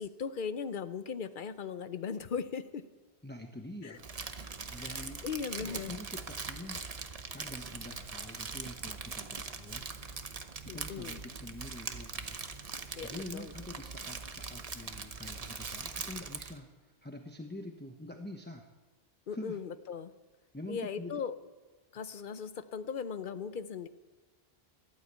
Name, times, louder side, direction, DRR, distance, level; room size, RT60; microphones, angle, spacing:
voice 1, 0.0-2.8 3.8-4.0 4.8-6.0 10.7-11.2 13.0-13.5 19.3-20.1 20.7-21.3 21.9-23.9, left 6 dB, 55° left, 13 dB, 0.8 m, -38 dB
voice 2, 3.2-4.1 4.7-5.2 5.6-6.8 7.3-9.9 10.6-12.4 13.0-18.7 19.3-19.6 20.5-21.1, left 1 dB, 10° left, 2 dB, 1.0 m, -45 dB
Crumpling crinkling, 4.0-16.6, right 4 dB, 40° right, 0.9 m, -41 dB
14.5 x 12.0 x 8.2 m, 1.3 s
omnidirectional pair, 1.1 m